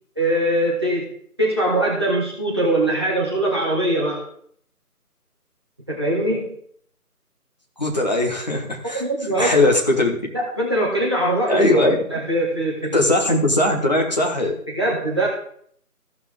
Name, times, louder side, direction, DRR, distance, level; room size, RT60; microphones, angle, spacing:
voice 1, 0.2-1.1 1.4-4.2 5.9-6.5 8.9-9.7 10.3-11.7 12.1-13.0 14.7-15.3, right 1 dB, 15° right, -5 dB, 1.5 m, -22 dB
voice 2, 7.8-9.0 9.4-10.2 11.5-12.0 12.9-14.5, left 1 dB, 30° left, 0 dB, 1.3 m, -19 dB
15.5 x 5.8 x 3.6 m, 0.62 s
figure-of-eight pair, 165°, 46 cm